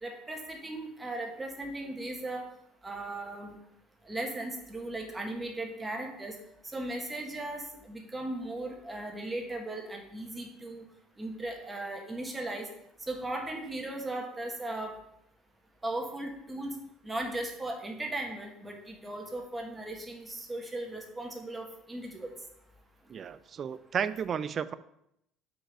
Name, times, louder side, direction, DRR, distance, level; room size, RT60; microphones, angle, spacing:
voice 1, 0.0-2.4 2.8-3.6 4.1-6.3 6.7-10.8 11.2-12.7 13.1-14.9 15.8-16.7 17.0-22.3, right 2 dB, 15° right, 2 dB, 1.5 m, -37 dB
voice 2, 23.1-24.7, right 7 dB, 45° right, 16 dB, 0.3 m, -33 dB
6.3 x 4.7 x 4.6 m, 0.77 s
hypercardioid pair, 60°, 0 cm